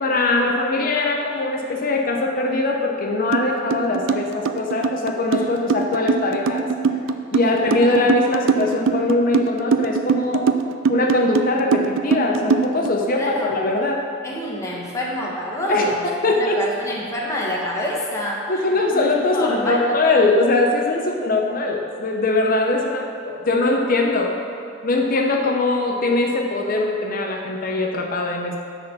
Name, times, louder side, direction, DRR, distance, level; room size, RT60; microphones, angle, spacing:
voice 1, 0.0-6.7 7.3-10.5 10.9-14.0 15.7-16.6 18.5-24.4 24.8-28.6, left 2 dB, 45° left, 1 dB, 0.8 m, -21 dB
sound 1, 3.3-3.4 3.7-12.9, right 5 dB, 80° right, 0.4 m, -21 dB
voice 2, 7.4-8.0 13.2-13.6 14.2-20.0, left 1 dB, 15° left, -3 dB, 1.3 m, -28 dB
10.0 x 4.1 x 6.9 m, 2.5 s
head